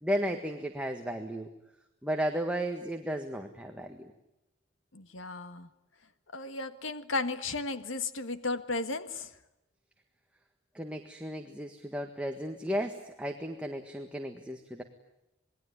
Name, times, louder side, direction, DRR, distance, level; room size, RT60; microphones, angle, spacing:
voice 1, 0.0-1.5 2.0-4.1 10.7-14.8, equal, 5° right, 3 dB, 1.6 m, -34 dB
voice 2, 4.9-5.7 6.3-9.3, left 3 dB, 85° left, 11 dB, 1.6 m, -34 dB
28.0 x 21.0 x 9.7 m, 0.91 s
head